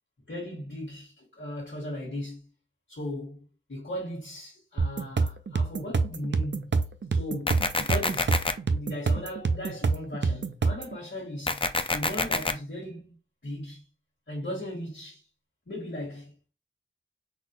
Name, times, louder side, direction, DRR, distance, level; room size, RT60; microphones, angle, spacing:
voice 1, 0.3-2.5 2.9-6.8 7.1-8.3 8.7-11.6 11.9-13.1 13.4-13.8 14.3-15.2 15.7-16.3, left 1 dB, 65° left, 1.3 m, -37 dB
sound 1, 4.8-11.0, right 4 dB, 60° right, 0.5 m, -27 dB
sound 2, 7.5-8.5 11.5-12.5, left 3 dB, 25° left, 0.4 m, -27 dB
4.0 x 2.1 x 2.9 m
wide cardioid pair, 45°, 21 cm